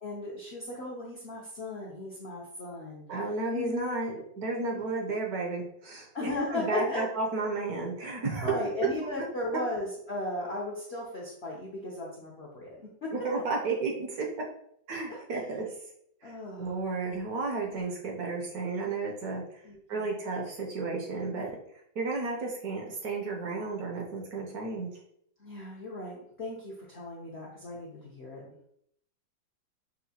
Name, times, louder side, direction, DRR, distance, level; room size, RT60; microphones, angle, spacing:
voice 1, 0.0-3.0 3.5-3.9 4.6-4.9 6.1-7.0 8.4-13.1 16.2-16.7 19.6-20.1 25.4-28.5, left 1 dB, 65° left, -3 dB, 0.6 m, -36 dB
voice 2, 3.1-8.5 13.1-14.3 14.9-15.7 16.2-19.6 19.9-21.6 22.0-24.9, right 3 dB, 65° right, 0 dB, 1.0 m, -33 dB
5.6 x 2.4 x 2.8 m, 0.71 s
omnidirectional pair, 2.0 m